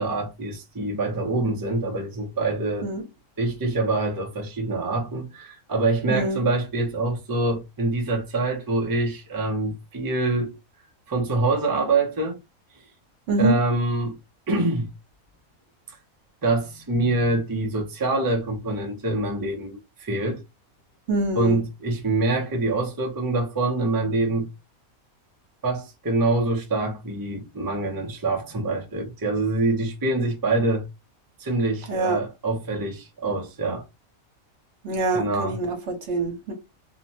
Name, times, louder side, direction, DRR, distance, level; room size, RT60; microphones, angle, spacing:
voice 1, 0.0-2.9 3.4-10.6 11.1-12.4 13.4-14.1 14.5-14.9 16.4-20.4 21.3-24.5 25.6-30.8 31.4-33.8 35.1-35.6, right 2 dB, 35° right, 0.3 m, -25 dB
voice 2, 6.0-6.4 13.3-13.6 21.1-21.6 31.9-32.2 34.8-36.5, right 2 dB, 60° right, 1.1 m, -25 dB
2.9 x 2.1 x 2.7 m
omnidirectional pair, 1.5 m